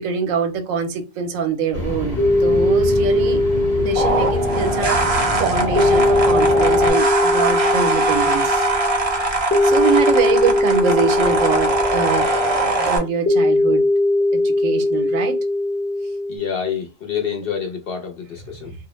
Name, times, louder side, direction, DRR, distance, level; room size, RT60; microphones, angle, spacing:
voice 1, 0.0-3.4 3.8-8.7 9.6-12.3 12.6-13.8 14.3-15.4, right 6 dB, 85° right, 1.0 m, -24 dB
sound 1, 1.7-6.9, left 1 dB, 30° left, 1.0 m, -27 dB
sound 2, 2.2-16.4, left 2 dB, 15° left, 0.4 m, -20 dB
sound 3, 3.9-13.0, right 2 dB, 40° right, 0.5 m, -21 dB
voice 2, 16.3-18.7, left 7 dB, 60° left, 0.7 m, -27 dB
2.3 x 2.1 x 3.0 m
omnidirectional pair, 1.4 m